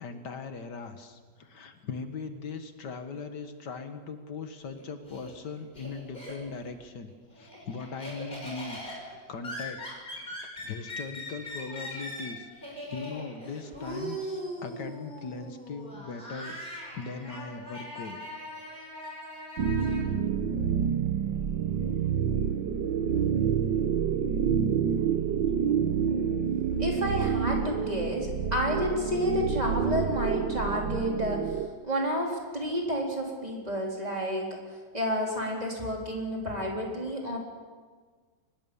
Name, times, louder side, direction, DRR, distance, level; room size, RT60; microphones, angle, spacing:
voice 1, 0.0-8.8 9.3-16.6 16.9-18.2 25.5-25.6, left 4 dB, 75° left, 8 dB, 2.0 m, -40 dB
Laughter, 4.6-6.7 7.1-20.0, equal, 25° left, 6.3 m, -40 dB
sound 1, 19.6-31.7, right 7 dB, 85° right, 1.7 m, -28 dB
voice 2, 26.8-31.5 31.8-34.6 34.9-37.4, equal, 20° right, -1 dB, 4.2 m, -30 dB
24.0 x 20.5 x 7.1 m, 1.5 s
omnidirectional pair, 1.9 m